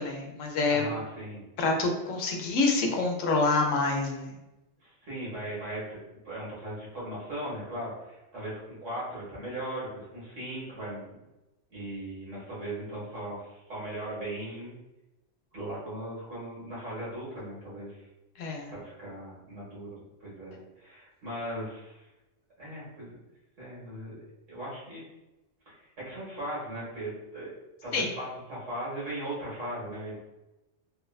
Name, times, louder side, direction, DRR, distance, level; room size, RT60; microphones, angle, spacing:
voice 1, 0.0-0.8 1.6-4.3 18.4-18.7 27.9-28.1, left 3 dB, 85° left, 2 dB, 1.0 m, -27 dB
voice 2, 0.7-1.5 4.8-11.2 11.7-14.8 15.5-18.1 18.7-22.0 22.6-23.2 23.6-24.2 24.5-25.0 25.6-27.5 27.8-30.2, right 1 dB, 80° right, -7 dB, 1.8 m, -38 dB
3.9 x 2.2 x 2.3 m, 0.98 s
omnidirectional pair, 1.3 m